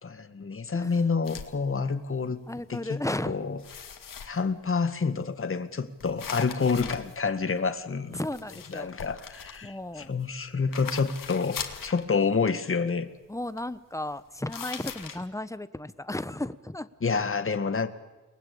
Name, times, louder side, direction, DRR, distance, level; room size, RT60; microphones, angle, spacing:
voice 1, 0.0-2.4 2.7-3.0 3.3-3.6 4.3-8.2 8.7-13.1 17.0-17.9, left 5 dB, 40° left, 9 dB, 1.9 m, -28 dB
sound 1, 1.2-1.5 2.2-2.5 2.8-3.2 3.6-4.7 6.0-7.7 8.2-10.3 10.7-12.0 14.5-15.2, left 7 dB, 90° left, 2.4 m, -40 dB
voice 2, 2.5-3.4 8.1-8.9 9.6-10.1 13.3-16.9, left 1 dB, 10° left, 13 dB, 1.1 m, -34 dB
29.5 x 20.0 x 8.6 m, 1.2 s
wide cardioid pair, 95°, 32 cm